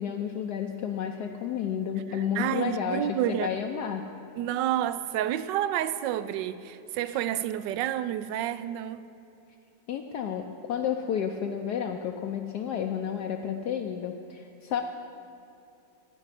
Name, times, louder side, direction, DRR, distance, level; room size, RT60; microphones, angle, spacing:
voice 1, 0.0-4.1 7.1-7.2 9.9-14.8, left 8 dB, 70° left, 1.2 m, -31 dB
voice 2, 2.4-3.5 4.4-9.0, right 11 dB, 75° right, 1.2 m, -29 dB
16.0 x 5.5 x 9.7 m
omnidirectional pair, 2.0 m